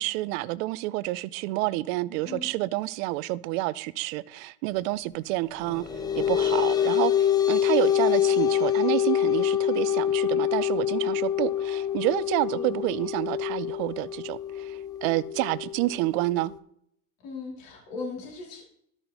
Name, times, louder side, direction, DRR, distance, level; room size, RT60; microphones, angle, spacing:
voice 1, 0.0-5.8 6.2-16.5, right 18 dB, 65° right, 0.5 m, -29 dB
sound 1, 5.6-16.6, left 10 dB, 10° left, 0.3 m, -26 dB
voice 2, 12.5-12.8 17.2-18.6, left 3 dB, 50° left, 2.7 m, -38 dB
13.0 x 5.5 x 2.9 m
supercardioid pair, 110°, 44 cm